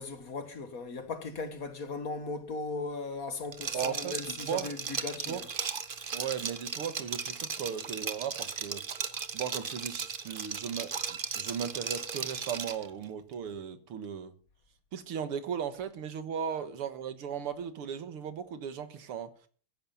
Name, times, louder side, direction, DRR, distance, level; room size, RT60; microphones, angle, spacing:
voice 1, 0.0-5.5, left 3 dB, 45° left, 1.6 m, -38 dB
Liquid, 3.5-12.9, right 5 dB, 45° right, 0.7 m, -36 dB
voice 2, 3.7-4.7 5.3-5.4 6.1-8.8 9.3-14.3 14.9-19.3, right 8 dB, 85° right, 2.4 m, -37 dB
14.5 x 10.5 x 5.6 m
omnidirectional pair, 2.4 m